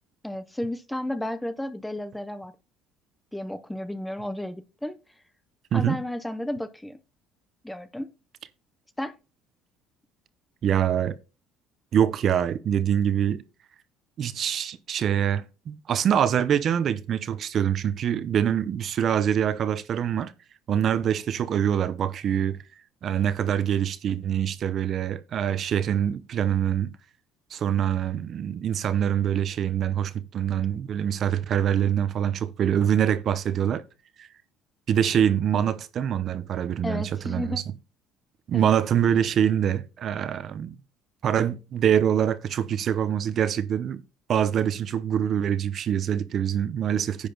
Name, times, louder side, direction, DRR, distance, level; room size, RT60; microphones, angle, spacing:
voice 1, 0.2-2.5 3.3-5.0 5.7-7.0 7.6-8.1 9.0-9.1 36.8-37.6 38.5-38.8, left 1 dB, 5° left, 0.6 m, -32 dB
voice 2, 10.6-11.2 11.9-13.4 14.2-20.3 20.7-22.6 23.0-26.9 27.5-33.8 34.2-34.3 34.9-37.6 38.5-40.8 41.2-44.0 44.3-47.3, right 9 dB, 35° right, 0.7 m, -24 dB
10.5 x 6.5 x 3.9 m
cardioid pair, 160°, 0 cm